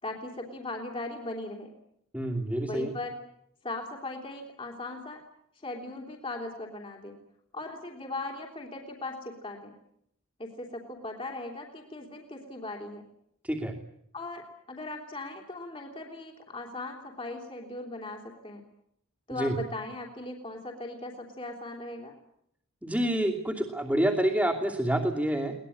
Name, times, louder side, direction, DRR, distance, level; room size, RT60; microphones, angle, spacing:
voice 1, 0.0-1.7 2.7-3.2 3.6-5.2 5.6-7.2 7.5-9.7 10.4-13.0 14.1-18.6 19.3-22.2, left 2 dB, 25° left, 1 dB, 3.1 m, -38 dB
voice 2, 2.1-2.9 13.4-13.7 19.3-19.6 22.8-25.5, right 1 dB, 5° right, -5 dB, 2.7 m, -27 dB
22.5 x 20.0 x 9.9 m, 0.74 s
head